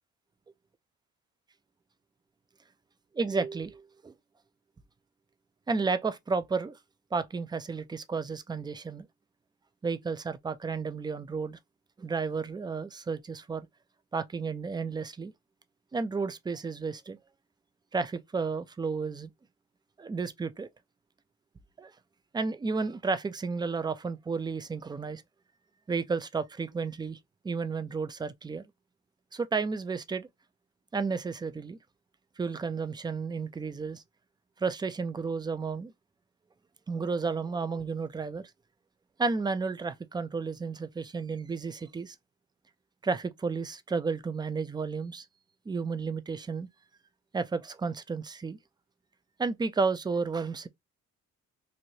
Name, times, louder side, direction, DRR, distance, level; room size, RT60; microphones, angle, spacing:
voice 1, 3.1-4.1 5.7-6.8 7.1-9.1 9.8-11.6 12.0-13.7 14.1-15.3 15.9-17.2 17.9-19.3 20.0-20.7 21.8-21.9 22.3-25.2 25.9-27.2 27.4-28.6 29.3-30.3 30.9-31.8 32.4-34.0 34.6-35.9 36.9-38.5 39.2-42.2 43.0-45.3 45.7-46.7 47.3-48.6 49.4-50.7, right 4 dB, 15° right, 0.3 m, -32 dB
3.1 x 2.5 x 2.7 m
cardioid pair, 90°, 30 cm